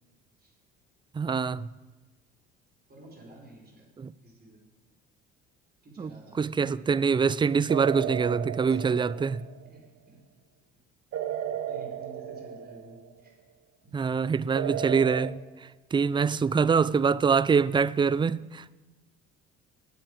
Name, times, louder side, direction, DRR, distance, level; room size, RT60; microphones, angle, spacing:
voice 1, 1.1-1.7 4.0-4.1 6.0-6.1 6.4-9.4 13.9-18.7, right 5 dB, 15° right, 0.4 m, -25 dB
voice 2, 2.9-3.9 4.2-4.7 5.8-6.5 8.7-8.9 9.1-10.2 11.5-13.4 13.8-14.0, right 1 dB, 30° right, 4.6 m, -51 dB
sound 1, 7.7-9.7 11.1-13.2 14.5-15.3, right 10 dB, 60° right, 1.1 m, -34 dB
9.9 x 8.7 x 8.6 m
hypercardioid pair, 60°, 30 cm